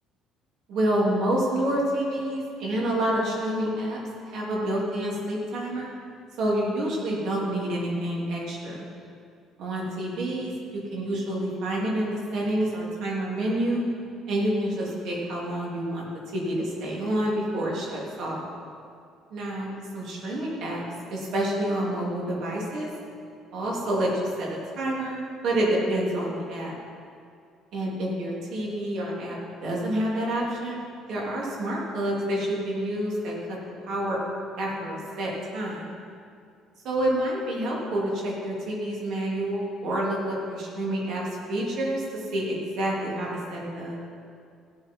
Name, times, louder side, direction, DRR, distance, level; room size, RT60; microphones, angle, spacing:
voice 1, 0.7-4.0 4.3-5.9 6.4-8.8 9.6-13.8 14.3-16.1 16.3-18.5 19.3-20.8 21.1-22.9 23.5-26.7 27.7-30.8 31.1-33.6 33.9-34.2 34.6-35.8 36.8-41.2 41.5-44.0, right 1 dB, 60° right, -4 dB, 3.2 m, -28 dB
16.0 x 7.8 x 4.7 m, 2.3 s
cardioid pair, 155°, 0 cm